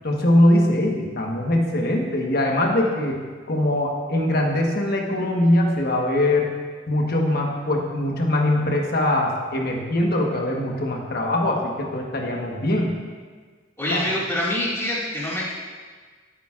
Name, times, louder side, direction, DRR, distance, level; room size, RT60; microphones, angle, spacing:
voice 1, 0.0-3.2 3.5-6.5 6.9-12.9 13.9-14.0, left 1 dB, 50° left, 0 dB, 1.2 m, -22 dB
voice 2, 13.8-15.5, left 1 dB, 15° left, -7 dB, 2.0 m, -25 dB
13.5 x 8.8 x 2.4 m, 1.5 s
head